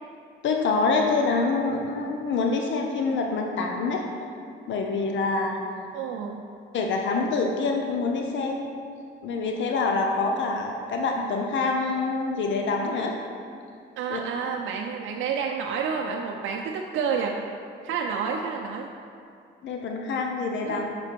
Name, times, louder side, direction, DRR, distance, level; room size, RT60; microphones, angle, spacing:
voice 1, 0.4-4.0 4.7-5.6 6.7-8.7 9.2-13.1 14.1-14.2 19.6-20.9, left 3 dB, 70° left, 2 dB, 0.7 m, -26 dB
voice 2, 5.9-6.4 14.0-17.4 17.8-18.9 20.6-20.8, right 6 dB, 80° right, 1 dB, 0.5 m, -29 dB
5.8 x 5.2 x 4.5 m, 2.4 s
cardioid pair, 90°, 20 cm